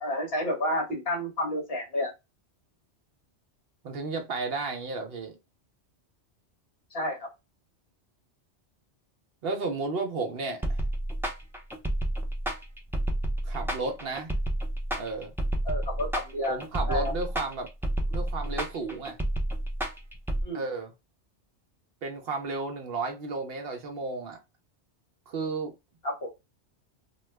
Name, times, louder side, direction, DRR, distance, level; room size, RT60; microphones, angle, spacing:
voice 1, 0.0-2.1 6.9-7.3 15.6-16.6 16.9-17.1 20.4-20.6 26.0-26.3, left 1 dB, 60° left, 1.5 m, -30 dB
voice 2, 3.8-5.3 9.4-10.8 13.4-14.3 15.0-15.3 16.5-17.7 18.1-19.2 20.5-20.9 22.0-24.4 25.3-25.7, right 3 dB, 60° right, 0.8 m, -33 dB
sound 1, 10.6-20.4, right 1 dB, 5° right, 0.3 m, -30 dB
3.0 x 2.3 x 3.2 m
omnidirectional pair, 1.2 m